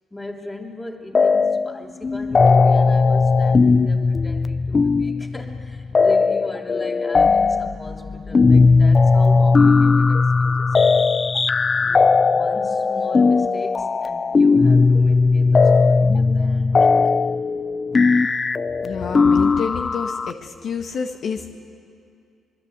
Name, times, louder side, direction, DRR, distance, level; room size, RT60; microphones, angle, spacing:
voice 1, 0.1-11.0 11.8-17.2, left 1 dB, 15° left, 1 dB, 3.1 m, -38 dB
sound 1, 1.2-1.8 2.0-20.3, left 4 dB, 35° left, 0.5 m, -17 dB
voice 2, 18.8-21.5, left 6 dB, 60° left, 3 dB, 1.6 m, -28 dB
26.0 x 22.5 x 8.1 m, 2.5 s
cardioid pair, 90°, 0 cm